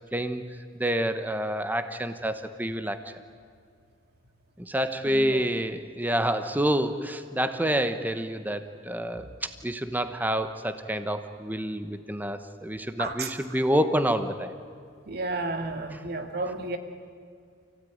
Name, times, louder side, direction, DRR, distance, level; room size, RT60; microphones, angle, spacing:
voice 1, 0.1-0.4 0.7-3.1 4.6-14.5 15.9-16.0, equal, 10° right, 9 dB, 1.1 m, -28 dB
voice 2, 5.1-5.4 13.0-13.3 15.1-16.8, right 3 dB, 55° right, 6 dB, 2.1 m, -32 dB
29.0 x 16.5 x 9.4 m, 2.2 s
head